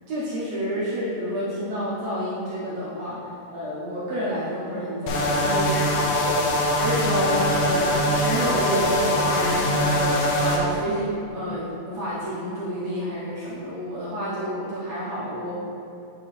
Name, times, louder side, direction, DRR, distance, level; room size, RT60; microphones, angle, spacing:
voice 1, 0.1-5.9 6.1-6.4 6.8-15.5, equal, 70° right, -9 dB, 1.6 m, -29 dB
sound 1, 5.1-10.6, left 1 dB, 75° left, 2.3 m, -22 dB
8.9 x 4.5 x 3.2 m, 2.6 s
omnidirectional pair, 4.2 m